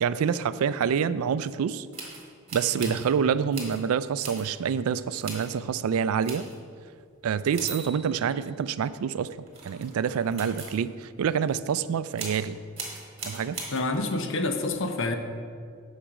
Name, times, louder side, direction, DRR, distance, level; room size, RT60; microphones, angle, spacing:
voice 1, 0.0-1.9 2.5-6.5 7.2-9.3 9.6-12.6 13.2-13.6, right 7 dB, 80° right, 16 dB, 0.3 m, -27 dB
sound 1, 1.9-3.1 3.5-3.8 4.2-4.5 5.2-5.5 6.2-6.6 7.5-8.9 9.4-10.8 12.2-12.4 12.8-14.0, right 4 dB, 30° right, 2.0 m, -39 dB
voice 2, 13.7-15.2, left 2 dB, 60° left, 6 dB, 0.8 m, -28 dB
8.8 x 6.5 x 4.9 m, 2.1 s
head